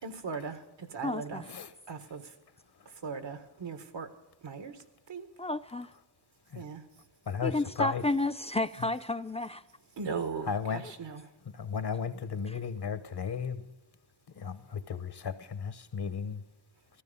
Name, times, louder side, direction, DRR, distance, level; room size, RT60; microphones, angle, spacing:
voice 1, 0.0-1.4 1.9-2.3 2.8-4.1 4.4-5.3 6.5-6.9 9.9-11.2, right 5 dB, 85° right, 1.6 m, -39 dB
voice 2, 1.0-1.4 5.4-5.9 7.4-9.6 12.5-12.6, left 2 dB, 15° left, 0.5 m, -31 dB
voice 3, 7.3-8.0 10.5-10.8 11.5-13.6 14.3-16.4, left 6 dB, 65° left, 1.2 m, -34 dB
15.0 x 14.5 x 5.5 m
wide cardioid pair, 80°, 43 cm